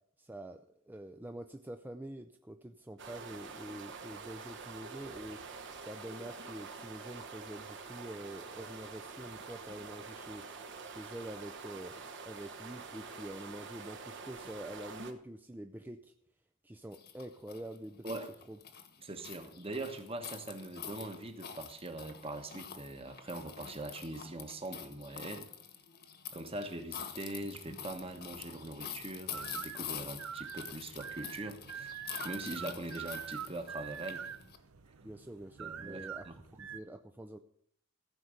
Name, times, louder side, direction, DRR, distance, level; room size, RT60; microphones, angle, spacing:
voice 1, 0.2-5.4 5.8-16.1 16.6-18.2 18.5-18.6 35.0-37.4, right 1 dB, 10° right, 6 dB, 0.4 m, -46 dB
sound 1, 3.0-15.1, right 4 dB, 55° right, 1.3 m, -47 dB
sound 2, 16.9-34.6, left 8 dB, 45° left, 1.2 m, -46 dB
voice 2, 19.0-25.5 26.3-31.9 32.2-34.2 35.6-36.4, right 2 dB, 25° right, 7 dB, 1.3 m, -42 dB
sound 3, 27.7-36.8, right 8 dB, 80° right, 0.7 m, -45 dB
15.0 x 5.1 x 8.0 m, 0.68 s
head